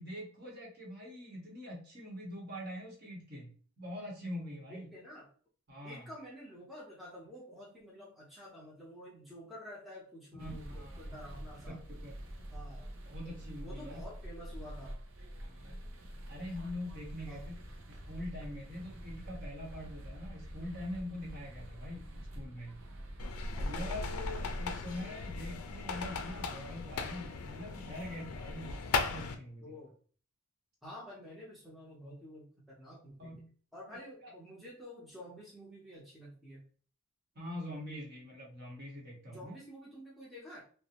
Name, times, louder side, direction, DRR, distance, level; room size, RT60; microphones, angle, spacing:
voice 1, 0.0-4.9 5.7-6.1 10.4-11.1 11.7-12.1 13.0-14.0 15.4-15.8 16.3-17.6 17.9-22.7 23.5-29.8 33.2-33.5 34.2-34.3 37.3-39.6, left 1 dB, 50° right, -3 dB, 1.0 m, -44 dB
voice 2, 4.7-5.3 5.8-11.8 12.5-12.9 13.6-15.0 17.3-17.5 29.6-29.9 30.8-33.3 33.7-36.6 39.3-40.6, equal, ahead, -6 dB, 0.7 m, -49 dB
sound 1, 10.4-24.6, equal, 65° right, 0.5 m, -46 dB
sound 2, 23.2-29.3, left 4 dB, 85° left, 0.4 m, -37 dB
2.5 x 2.1 x 2.9 m, 0.43 s
head